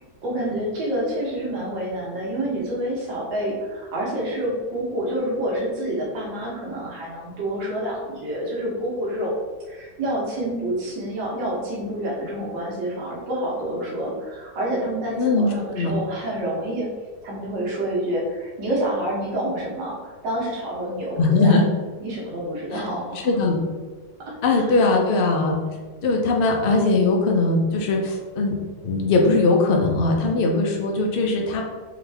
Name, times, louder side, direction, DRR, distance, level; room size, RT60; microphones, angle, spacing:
voice 1, 0.2-9.4 9.7-16.9 17.2-21.6 22.0-23.4 24.2-24.9, right 1 dB, 80° right, -5 dB, 1.9 m, -28 dB
voice 2, 15.2-15.5 15.7-15.9 21.2-21.6 22.7-22.8 23.2-23.6 24.4-25.5 26.0-28.6 28.8-31.6, left 3 dB, 75° left, 0 dB, 0.5 m, -20 dB
3.8 x 3.6 x 3.4 m, 1.4 s
omnidirectional pair, 1.9 m